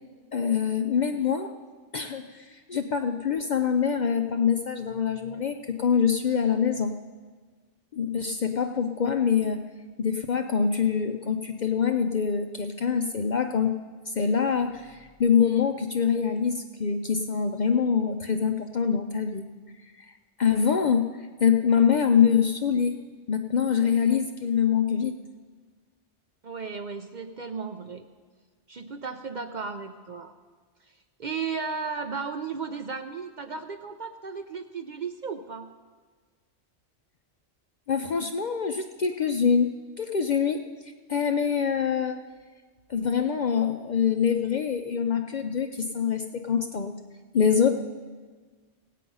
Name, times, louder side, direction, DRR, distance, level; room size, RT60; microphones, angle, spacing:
voice 1, 0.3-1.5 1.9-7.0 7.9-9.6 10.0-13.7 14.1-19.4 20.0-20.1 20.4-22.9 23.3-25.1 37.9-39.7 40.0-42.2 42.9-46.9 47.3-47.8, left 7 dB, 55° left, 6 dB, 0.5 m, -25 dB
voice 2, 26.4-28.1 28.7-30.3 30.8-35.7, right 5 dB, 55° right, 6 dB, 0.6 m, -35 dB
17.5 x 8.4 x 5.4 m, 1.5 s
omnidirectional pair, 1.2 m